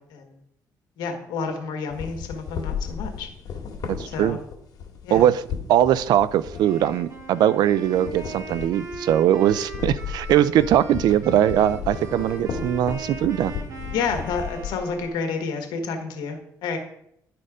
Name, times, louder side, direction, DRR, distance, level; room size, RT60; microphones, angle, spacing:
voice 1, 1.0-3.3 4.1-4.4 5.0-5.3 13.9-16.8, left 5 dB, 80° left, 5 dB, 1.5 m, -29 dB
sound 1, 1.9-7.4 7.6-15.1, left 6 dB, 65° left, 1.9 m, -35 dB
voice 2, 3.9-4.4 5.1-5.4 5.7-13.5, right 11 dB, 75° right, 17 dB, 0.4 m, -20 dB
Wind instrument woodwind instrument, 6.5-15.2, right 2 dB, 45° right, 2.0 m, -39 dB
10.5 x 4.3 x 4.9 m, 0.75 s
cardioid pair, 85°, 7 cm